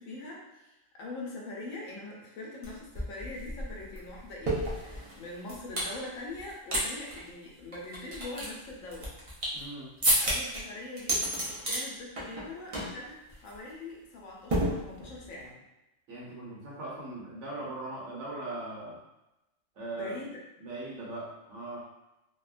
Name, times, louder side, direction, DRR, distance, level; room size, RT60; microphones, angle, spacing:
voice 1, 0.0-9.1 10.2-15.6 19.9-20.4, left 2 dB, 80° left, -2 dB, 1.0 m, -42 dB
sound 1, 2.6-2.7 2.9-5.9 6.4-6.8 7.1-7.2 7.7-9.6 10.0-10.6 11.0-11.8 12.2-12.5 12.7-13.0 13.3-13.5 14.5-15.3, right 1 dB, 45° right, 0.4 m, -30 dB
voice 2, 9.5-9.9 16.1-19.0 19.7-20.1 20.6-21.8, right 2 dB, 65° right, -5 dB, 1.1 m, -39 dB
2.7 x 2.1 x 2.4 m, 0.93 s
omnidirectional pair, 1.4 m